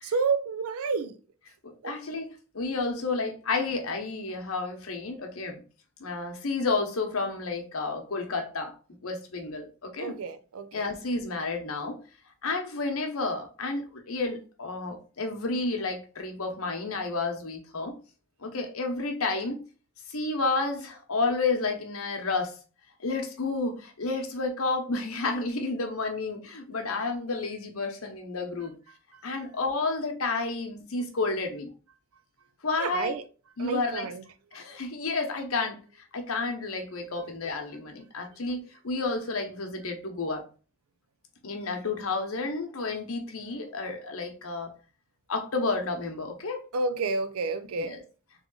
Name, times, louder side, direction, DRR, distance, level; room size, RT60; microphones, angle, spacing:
voice 1, 0.0-1.2 1.8-1.9 10.0-10.9 26.7-27.0 28.9-29.2 32.8-33.2 33.6-34.2 34.5-34.6 37.3-37.4 46.7-48.0, right 4 dB, 85° right, 0.5 m, -31 dB
voice 2, 1.6-5.6 6.0-8.7 9.0-10.1 10.7-12.0 12.4-18.0 18.4-19.6 20.1-22.5 23.0-28.7 29.2-31.7 32.6-33.1 33.6-34.1 34.5-40.4 41.4-44.7 45.3-46.6 47.8-48.0, left 3 dB, 80° left, 0.9 m, -31 dB
3.6 x 3.2 x 3.9 m
head